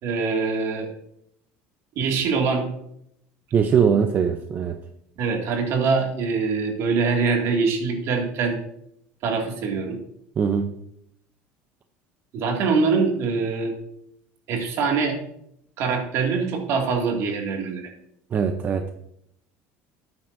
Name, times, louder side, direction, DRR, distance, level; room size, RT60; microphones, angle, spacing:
voice 1, 0.0-0.9 2.0-2.7 5.2-8.6 9.2-10.0 12.3-13.7 14.5-15.2 15.8-17.9, right 4 dB, 55° right, 2 dB, 2.2 m, -23 dB
voice 2, 3.5-4.8 10.4-10.8 18.3-18.9, right 6 dB, 30° right, 7 dB, 0.6 m, -21 dB
12.5 x 9.5 x 2.6 m, 0.75 s
cardioid pair, 135°, 6 cm